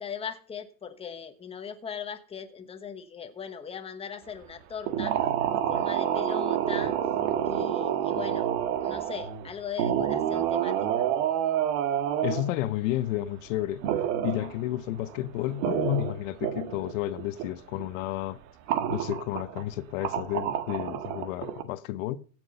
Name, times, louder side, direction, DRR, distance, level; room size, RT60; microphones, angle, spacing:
voice 1, 0.0-5.1 5.5-6.9 7.4-8.5 8.8-11.0, left 7 dB, 15° left, 1.2 m, -39 dB
sound 1, 4.9-9.5 9.8-12.5 13.8-14.6 15.1-15.2 15.4-16.9 17.2-17.5 17.8-17.9 18.7-19.6 20.0-21.6, right 10 dB, 65° right, 1.6 m, -28 dB
voice 2, 12.2-13.8 14.2-18.4 18.9-22.2, left 14 dB, 70° left, 0.9 m, -31 dB
16.0 x 6.2 x 5.4 m
supercardioid pair, 145°, 40 cm